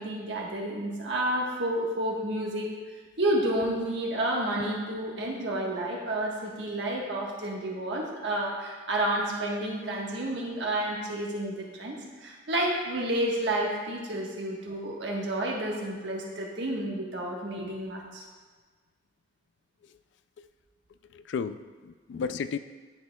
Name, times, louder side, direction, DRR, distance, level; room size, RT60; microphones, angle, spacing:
voice 1, 0.0-18.2, right 1 dB, 75° right, -2 dB, 1.3 m, -30 dB
voice 2, 21.1-22.6, left 6 dB, 75° left, 12 dB, 0.3 m, -33 dB
11.0 x 4.8 x 2.2 m, 1.4 s
head